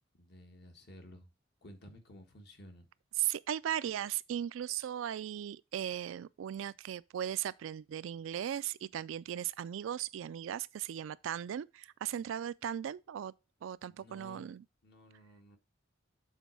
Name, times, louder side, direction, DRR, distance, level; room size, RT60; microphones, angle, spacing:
voice 1, 0.2-1.3 1.6-2.9 13.9-14.5 14.8-15.6, left 1 dB, 55° left, 1.3 m, -54 dB
voice 2, 3.2-13.3 13.6-14.6, right 10 dB, 75° right, 0.3 m, -37 dB
7.3 x 4.1 x 4.3 m
head